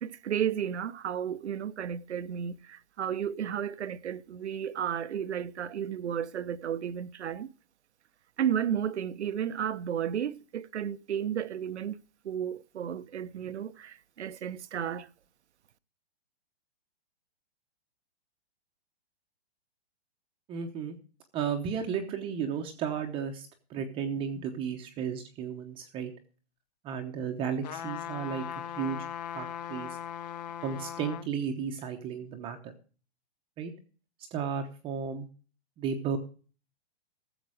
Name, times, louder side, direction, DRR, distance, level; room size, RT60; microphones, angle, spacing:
voice 1, 0.0-7.5 8.4-15.1, right 9 dB, 90° right, 0.8 m, -33 dB
voice 2, 20.5-21.0 21.3-26.1 26.8-28.5 28.8-29.0 29.3-30.0 30.6-32.7 33.6-33.7 34.3-35.3 35.8-36.2, right 7 dB, 15° right, 0.8 m, -34 dB
sound 1, 27.6-31.3 31.8-31.9, left 10 dB, 40° left, 0.6 m, -39 dB
14.0 x 7.4 x 4.8 m
hypercardioid pair, 155°, 33 cm